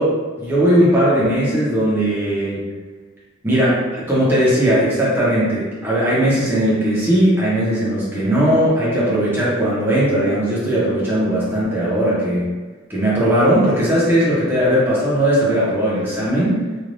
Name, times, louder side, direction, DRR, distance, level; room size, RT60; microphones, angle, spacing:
voice 1, 0.0-2.7 3.4-12.5 12.9-16.6, right 1 dB, 10° right, -8 dB, 0.8 m, -18 dB
3.2 x 2.4 x 2.6 m, 1.3 s
head